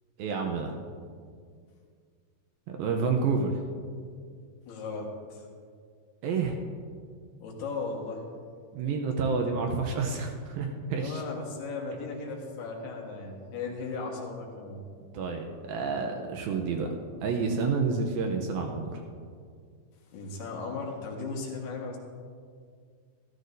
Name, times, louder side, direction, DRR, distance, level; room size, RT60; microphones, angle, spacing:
voice 1, 0.2-0.7 2.7-3.5 6.2-6.6 8.7-11.2 15.1-16.9 17.2-19.0, right 4 dB, 75° right, 3 dB, 2.3 m, -29 dB
voice 2, 4.7-5.5 7.4-8.2 11.0-14.8 20.1-22.0, left 4 dB, 75° left, -1 dB, 3.4 m, -36 dB
14.0 x 13.5 x 2.7 m, 2.1 s
omnidirectional pair, 4.8 m